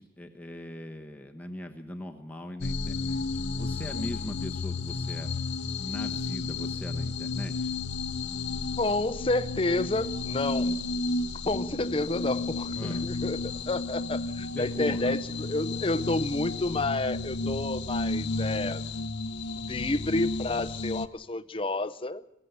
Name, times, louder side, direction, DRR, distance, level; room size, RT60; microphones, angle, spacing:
voice 1, 0.0-5.3 5.8-7.8 12.7-13.1 14.5-15.2, left 1 dB, 10° left, 3 dB, 1.1 m, -40 dB
sound 1, 2.6-21.1, left 3 dB, 65° left, 0.8 m, -32 dB
voice 2, 8.8-10.8 11.4-18.8 19.5-22.2, left 2 dB, 30° left, 12 dB, 0.7 m, -30 dB
22.5 x 15.5 x 8.1 m, 0.92 s
head